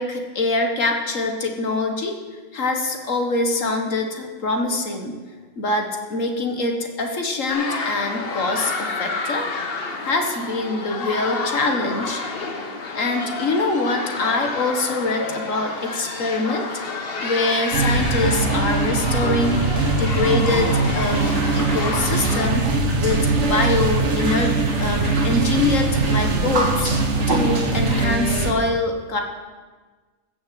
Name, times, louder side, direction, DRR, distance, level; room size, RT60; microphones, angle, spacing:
voice 1, 0.0-2.2 2.5-5.2 5.6-9.5 10.0-12.2 13.0-16.7 17.2-19.6 20.0-22.7 23.0-26.9 27.3-29.2, left 2 dB, 80° left, 4 dB, 1.9 m, -24 dB
sound 1, 7.5-22.5, left 3 dB, 50° left, 1.3 m, -29 dB
sound 2, 17.7-28.5, right 3 dB, 65° right, 1.5 m, -22 dB
sound 3, 21.0-28.0, right 2 dB, 90° right, 2.3 m, -30 dB
15.0 x 7.0 x 7.7 m, 1.4 s
omnidirectional pair, 1.3 m